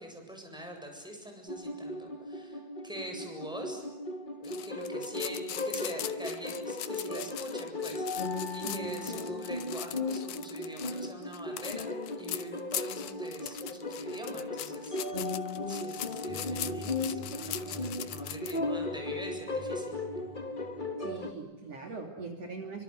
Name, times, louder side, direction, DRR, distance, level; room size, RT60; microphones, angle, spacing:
voice 1, 0.0-3.8 4.4-11.9 12.2-15.0 15.7-20.0, right 1 dB, ahead, 3 dB, 7.7 m, -44 dB
sound 1, 1.5-21.3, left 2 dB, 20° left, 1.3 m, -36 dB
sound 2, 4.4-18.6, left 12 dB, 75° left, 2.5 m, -41 dB
voice 2, 8.6-9.2 21.0-22.8, right 4 dB, 50° right, 3 dB, 4.0 m, -41 dB
sound 3, 16.3-21.3, left 1 dB, 85° right, 4.2 m, -46 dB
29.0 x 25.5 x 8.0 m, 1.1 s
omnidirectional pair, 3.6 m